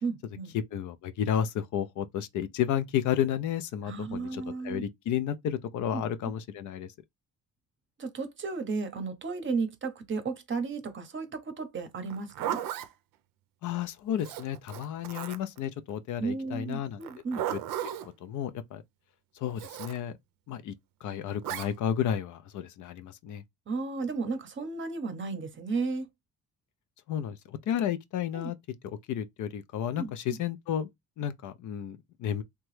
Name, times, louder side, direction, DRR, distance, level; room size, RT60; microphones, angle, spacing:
voice 1, 0.0-0.5 3.9-4.8 5.9-6.1 8.0-12.6 16.2-17.4 23.7-26.1 28.3-28.5 30.0-30.1, right 4 dB, 35° right, 0.7 m, -34 dB
voice 2, 0.5-6.9 13.6-17.0 17.5-17.6 18.0-18.8 19.3-20.2 20.5-20.7 21.0-23.4 27.1-28.6 28.8-30.9 31.2-32.4, left 9 dB, 60° left, 0.4 m, -32 dB
Zipper (clothing), 12.1-12.9 14.2-15.6 17.0-18.1 19.6-20.0 21.4-21.7, right 11 dB, 75° right, 0.5 m, -35 dB
2.9 x 2.2 x 3.1 m
cardioid pair, 120°, 34 cm